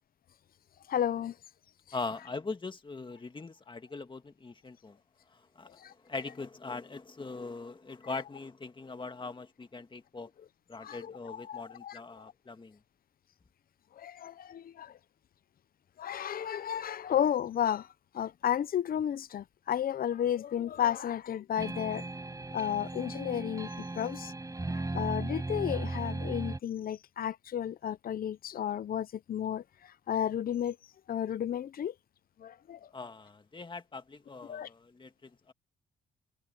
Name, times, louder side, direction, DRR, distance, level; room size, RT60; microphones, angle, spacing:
voice 1, 0.9-1.3 10.8-12.0 14.0-14.6 16.0-17.8 18.2-22.0 22.5-23.7 24.0-24.3 24.9-29.6 30.1-30.7 31.1-31.9 32.7-32.8 34.5-34.7, left 10 dB, 50° left, 0.7 m, -32 dB
voice 2, 1.9-5.0 5.3-10.3 10.7-12.8 32.9-35.5, left 3 dB, 25° left, 2.0 m, -41 dB
sound 1, 21.6-26.6, right 2 dB, 15° right, 6.4 m, -36 dB
cardioid pair, 90°, 20 cm